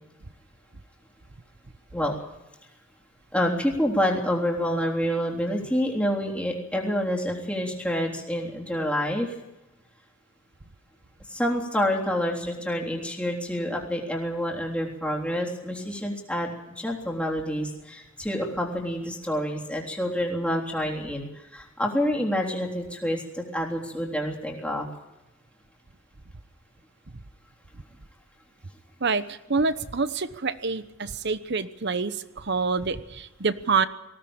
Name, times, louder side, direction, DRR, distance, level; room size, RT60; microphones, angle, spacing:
voice 1, 3.3-9.4 11.3-16.5 16.8-24.9, equal, 5° left, -1 dB, 3.5 m, -28 dB
voice 2, 29.0-33.9, right 4 dB, 55° right, 13 dB, 1.0 m, -27 dB
20.0 x 16.5 x 8.9 m, 0.98 s
head